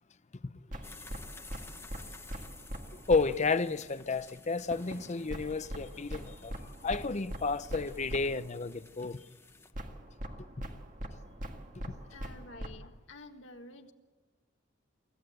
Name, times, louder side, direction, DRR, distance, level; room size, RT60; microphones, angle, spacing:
sound 1, 0.7-3.5 4.7-8.5 9.7-12.7, equal, 45° right, 1.9 m, -42 dB
sound 2, 0.8-9.7, left 3 dB, 15° left, 1.0 m, -54 dB
voice 1, 3.1-6.6 6.8-9.2, left 4 dB, 35° left, 0.7 m, -31 dB
voice 2, 12.0-13.9, left 2 dB, 75° left, 1.7 m, -50 dB
24.5 x 15.0 x 7.9 m
head